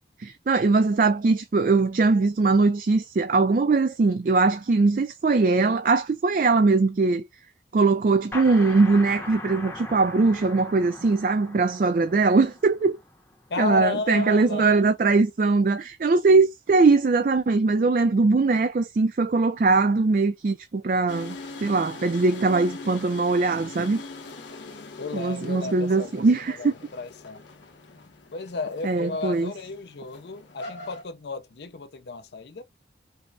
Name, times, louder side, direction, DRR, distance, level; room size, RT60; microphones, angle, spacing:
voice 1, 0.2-7.2 7.7-13.0 13.6-24.0 25.1-26.7 28.8-29.5, right 3 dB, 45° right, 0.4 m, -21 dB
sound 1, 8.3-13.7, left 2 dB, 10° left, 0.7 m, -40 dB
voice 2, 13.5-14.8 25.0-27.4 28.3-32.6, left 3 dB, 65° left, 0.5 m, -33 dB
sound 2, 21.1-31.0, left 3 dB, 80° left, 1.0 m, -42 dB
5.3 x 2.1 x 2.6 m
head